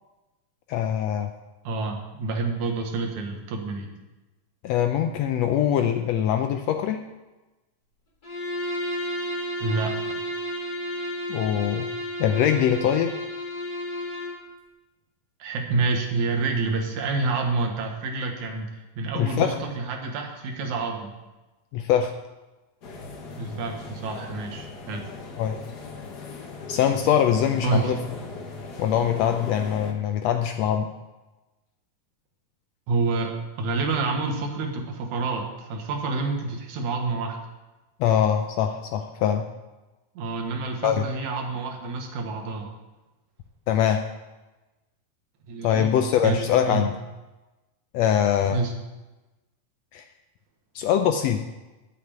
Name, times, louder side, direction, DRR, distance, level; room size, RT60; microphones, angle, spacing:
voice 1, 0.7-1.3 4.6-7.0 11.3-11.9 12.2-13.1 19.1-19.6 21.7-22.1 25.4-25.6 26.7-28.0 28.8-30.9 38.0-39.5 40.8-41.0 43.7-44.0 45.6-46.9 47.9-48.6 49.9-50.0 50.7-51.4, left 9 dB, 85° left, 6 dB, 1.5 m, -23 dB
voice 2, 1.6-3.9 9.6-10.0 15.4-18.7 19.0-21.1 23.4-25.1 27.6-28.0 32.9-37.4 40.2-42.7 45.5-45.9 46.2-46.9 48.5-48.7, right 3 dB, 70° right, 3 dB, 2.7 m, -28 dB
Bowed string instrument, 8.2-14.4, equal, 30° left, 4.0 m, -32 dB
sound 1, 22.8-29.9, left 4 dB, 55° left, 1.1 m, -38 dB
8.4 x 7.8 x 8.6 m, 1.1 s
omnidirectional pair, 3.6 m